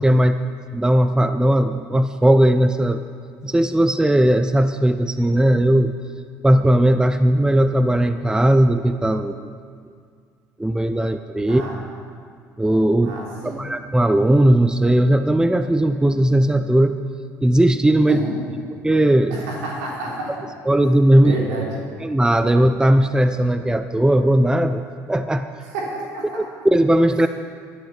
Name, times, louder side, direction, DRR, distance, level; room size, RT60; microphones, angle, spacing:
voice 1, 0.0-3.0 3.4-6.0 6.4-9.5 10.6-11.6 12.6-13.2 13.4-17.0 17.4-18.2 18.8-19.4 20.7-21.4 22.0-25.5 26.3-27.3, right 1 dB, 10° right, 9 dB, 0.7 m, -17 dB
voice 2, 11.5-11.8 13.0-13.7 18.1-18.4 19.3-20.3 21.2-21.7 25.7-26.4, right 2 dB, 85° right, -4 dB, 3.6 m, -29 dB
13.0 x 11.5 x 6.0 m, 2.1 s
hypercardioid pair, 70°, 9 cm